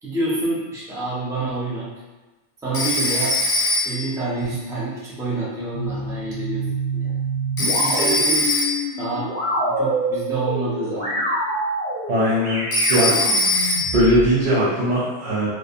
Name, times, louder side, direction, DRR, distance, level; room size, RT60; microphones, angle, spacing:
voice 1, 0.0-1.9 2.6-3.4 3.8-6.6 6.9-7.2 7.6-8.5 9.0-11.3, right 2 dB, 5° right, -8 dB, 0.4 m, -27 dB
Telephone, 2.7-4.2 7.6-9.0 12.7-14.1, left 1 dB, 50° left, 0.4 m, -21 dB
sound 1, 5.7-14.3, right 1 dB, 45° right, 1.4 m, -26 dB
voice 2, 12.1-13.3 13.9-15.5, equal, 90° right, -7 dB, 1.0 m, -20 dB
2.6 x 2.3 x 2.5 m, 1.2 s
omnidirectional pair, 1.1 m